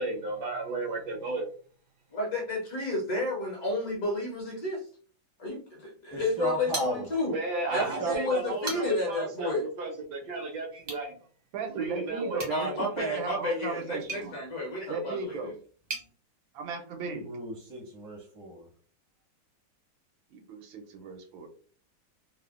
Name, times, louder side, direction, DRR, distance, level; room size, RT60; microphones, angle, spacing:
voice 1, 0.0-1.5 7.3-11.1 11.7-12.5, right 3 dB, 75° right, 1 dB, 1.0 m, -34 dB
voice 2, 2.1-4.8 5.4-7.3 7.7-9.7 12.5-15.5, left 2 dB, 65° left, -1 dB, 1.0 m, -31 dB
voice 3, 6.1-7.1 7.7-8.2 17.3-18.7, right 2 dB, 25° left, -6 dB, 0.5 m, -35 dB
sound 1, 6.7-7.5 7.8-7.9 8.4-9.2 10.8-11.1 12.3-16.1, right 3 dB, 40° right, 0.6 m, -41 dB
voice 4, 11.5-14.3 14.9-15.5 16.5-17.3 20.3-21.5, right 4 dB, 90° right, 4 dB, 1.4 m, -36 dB
3.3 x 2.1 x 2.3 m, 0.42 s
omnidirectional pair, 2.1 m